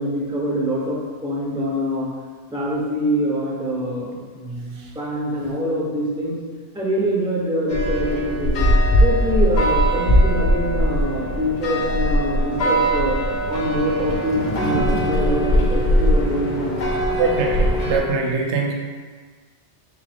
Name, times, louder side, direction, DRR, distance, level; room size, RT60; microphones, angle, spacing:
voice 1, 0.0-2.1 2.5-6.4 6.7-8.7 9.0-13.1 13.5-16.9, equal, 5° right, -4 dB, 0.4 m, -24 dB
sound 1, 7.7-18.0, equal, 55° left, 0.5 m, -20 dB
voice 2, 17.2-18.7, right 4 dB, 75° right, 1 dB, 0.9 m, -22 dB
3.9 x 3.0 x 3.3 m, 1.5 s
omnidirectional pair, 1.2 m